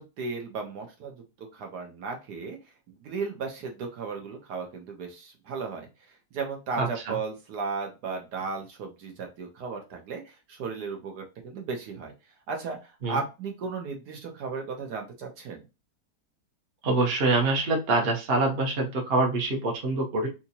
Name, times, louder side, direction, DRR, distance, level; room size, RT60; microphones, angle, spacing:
voice 1, 0.0-2.6 2.9-5.9 6.3-12.1 12.5-15.6, right 4 dB, 70° right, 3 dB, 1.3 m, -35 dB
voice 2, 6.8-7.1 13.0-13.2 16.8-20.3, right 2 dB, 40° right, 1 dB, 1.0 m, -25 dB
3.4 x 2.9 x 2.7 m, 0.27 s
omnidirectional pair, 1.8 m